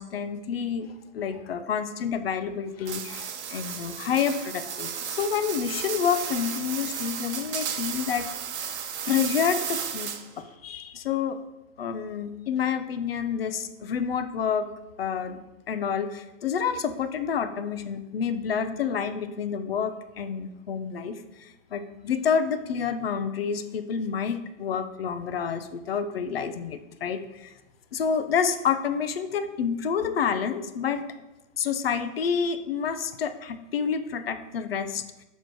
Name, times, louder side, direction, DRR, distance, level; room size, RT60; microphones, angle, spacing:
voice 1, 0.0-8.3 9.1-10.1 10.4-11.4 11.8-14.7 15.0-15.4 15.7-27.5 27.9-31.0 31.6-35.2, left 7 dB, 50° left, 11 dB, 0.6 m, -28 dB
sound 1, 2.9-10.4, right 7 dB, 60° right, 0.9 m, -34 dB
6.6 x 4.4 x 4.6 m, 1.0 s
hypercardioid pair, 175°, 39 cm